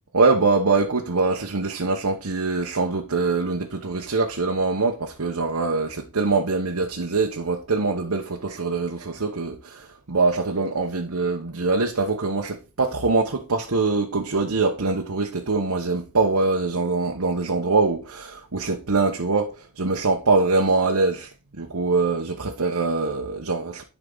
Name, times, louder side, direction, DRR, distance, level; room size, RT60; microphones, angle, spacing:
voice 1, 0.1-23.8, right 3 dB, 70° right, 1.1 m, -23 dB
11.0 x 5.0 x 3.9 m
head